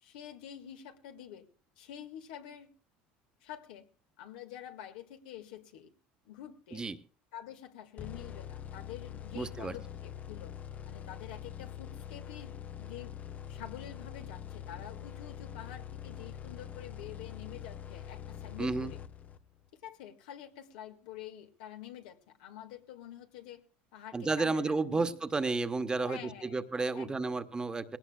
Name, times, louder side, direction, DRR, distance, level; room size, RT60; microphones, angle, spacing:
voice 1, 0.0-1.5 1.8-2.7 3.4-3.9 4.2-5.9 6.3-6.9 7.3-10.6 10.9-13.2 13.5-19.0 19.8-23.6 23.9-25.1 26.0-26.6 26.9-27.4, left 11 dB, 85° left, 6 dB, 1.8 m, -47 dB
sound 1, 8.0-19.6, left 9 dB, 35° left, 0.7 m, -44 dB
voice 2, 9.3-9.8 18.6-18.9 24.1-28.0, right 3 dB, 15° right, 10 dB, 1.1 m, -32 dB
20.0 x 17.5 x 2.3 m, 0.39 s
supercardioid pair, 110°, 5 cm